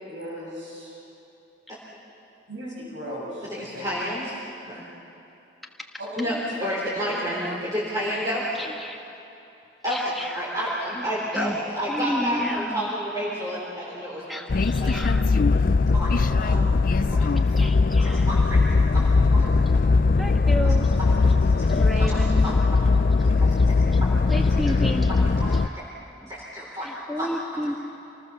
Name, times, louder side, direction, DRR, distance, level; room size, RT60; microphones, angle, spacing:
voice 1, 0.1-1.0 2.5-3.9 6.0-6.7 7.0-7.4 15.9-16.6 24.1-24.2 24.6-24.7 26.8-26.9, equal, 80° right, -4 dB, 7.1 m, -37 dB
voice 2, 3.5-4.3 4.7-4.9 6.2-6.3 6.6-8.4 9.8-14.9 15.9-16.1 18.3-19.0 19.3-19.5 21.5-22.2 22.4-22.5 23.4-23.5 25.7-25.8 26.3-27.3, equal, 20° right, -7 dB, 3.8 m, -30 dB
voice 3, 8.5-9.0 9.9-10.4 10.9-11.6 11.9-12.9 14.3-15.3 17.5-18.4 20.1-20.9 21.6-22.6 23.6-23.7 23.9-24.0 24.3-25.2 25.5-25.6 26.2-26.3 26.8-27.8, equal, ahead, 2 dB, 1.5 m, -32 dB
sound 1, 14.5-25.7, left 3 dB, 45° left, 0.4 m, -20 dB
27.5 x 19.5 x 7.1 m, 2.9 s
head